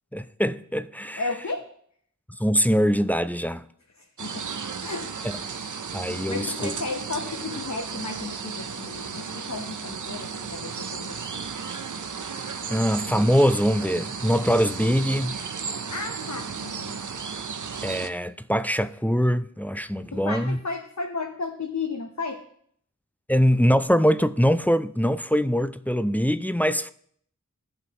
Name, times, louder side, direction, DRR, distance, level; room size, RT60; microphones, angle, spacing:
voice 1, 0.1-1.2 2.4-3.6 5.9-6.7 12.7-15.4 17.8-20.6 23.3-26.9, equal, 5° left, 0.3 m, -23 dB
voice 2, 1.2-1.7 4.0-5.2 5.6-5.7 6.3-11.2 15.9-17.0 20.1-22.4, left 3 dB, 60° left, 0.9 m, -34 dB
sound 1, 4.2-18.1, right 5 dB, 70° right, 0.6 m, -34 dB
16.5 x 5.6 x 3.0 m
wide cardioid pair, 45°, 32 cm